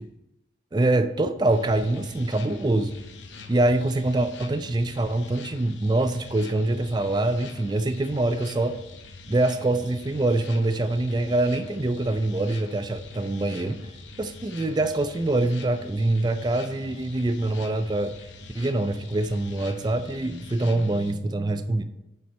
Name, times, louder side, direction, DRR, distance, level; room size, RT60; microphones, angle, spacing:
voice 1, 0.7-2.9 3.5-8.8 9.3-13.8 14.2-18.2 18.6-21.8, right 2 dB, 25° right, 10 dB, 0.3 m, -24 dB
sound 1, 1.4-21.1, left 3 dB, 85° left, 0.8 m, -44 dB
7.3 x 4.4 x 5.3 m, 0.91 s
head